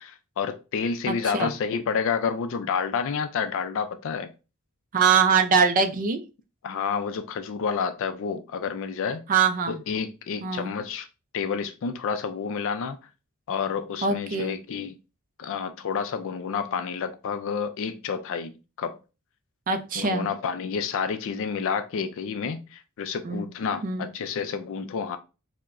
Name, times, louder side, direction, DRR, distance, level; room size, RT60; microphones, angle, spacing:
voice 1, 0.0-4.3 6.6-9.2 9.7-11.1 11.3-13.0 13.5-14.9 15.4-18.5 18.8-19.0 19.9-25.2, left 6 dB, 60° left, 0.4 m, -29 dB
voice 2, 1.1-1.5 4.9-6.2 9.3-9.8 10.4-10.7 14.0-14.5 19.7-20.3 23.2-23.5 23.8-24.1, right 5 dB, 40° right, 0.4 m, -23 dB
4.5 x 2.1 x 2.5 m
head